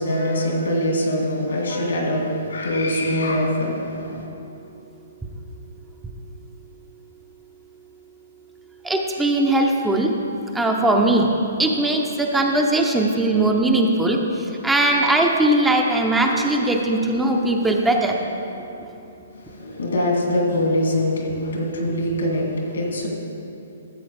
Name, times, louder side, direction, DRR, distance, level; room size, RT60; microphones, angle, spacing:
voice 1, 0.0-4.3 19.4-23.1, left 1 dB, 80° left, -1 dB, 2.4 m, -23 dB
voice 2, 8.8-10.1 10.5-11.3 11.6-14.2 14.6-18.1, right 2 dB, 5° right, 1 dB, 0.7 m, -19 dB
13.0 x 7.6 x 3.4 m, 2.9 s
hypercardioid pair, 140°, 0 cm